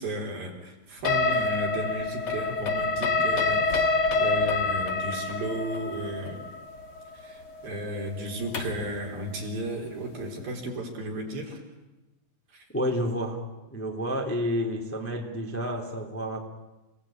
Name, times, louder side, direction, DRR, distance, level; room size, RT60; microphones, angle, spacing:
voice 1, 0.0-6.4 7.1-11.6 12.5-12.6, equal, 50° right, 0 dB, 5.5 m, -34 dB
sound 1, 1.0-8.9, left 3 dB, 80° left, 1.2 m, -27 dB
voice 2, 12.7-13.4 13.7-16.4, equal, 5° left, 1 dB, 1.7 m, -30 dB
29.5 x 18.5 x 8.8 m, 1.0 s
omnidirectional pair, 5.6 m